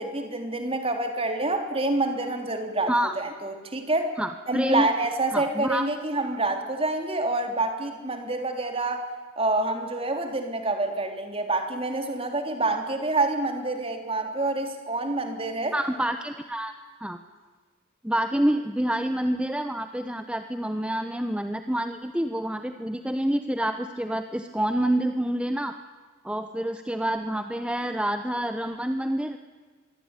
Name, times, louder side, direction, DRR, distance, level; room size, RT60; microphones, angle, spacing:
voice 1, 0.0-4.1 4.5-9.1 9.4-15.7, right 2 dB, 30° right, 5 dB, 3.5 m, -27 dB
voice 2, 4.2-4.9 5.3-5.9 15.7-16.7 17.0-17.2 18.0-25.8 26.2-29.4, right 1 dB, 5° right, 8 dB, 1.0 m, -27 dB
26.0 x 22.0 x 9.9 m, 1.5 s
head